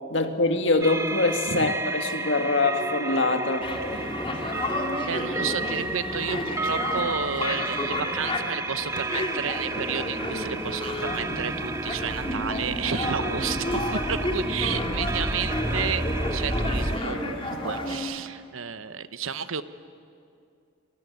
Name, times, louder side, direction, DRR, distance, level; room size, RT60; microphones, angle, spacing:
voice 1, 0.1-3.7, left 2 dB, 60° left, 5 dB, 2.1 m, -24 dB
sound 1, 0.8-17.0, right 2 dB, 15° right, 0.8 m, -31 dB
sound 2, 3.6-18.0, left 1 dB, 25° left, 2.8 m, -31 dB
voice 2, 5.0-19.6, right 6 dB, 80° right, 12 dB, 1.0 m, -32 dB
28.0 x 22.5 x 9.4 m, 2.5 s
head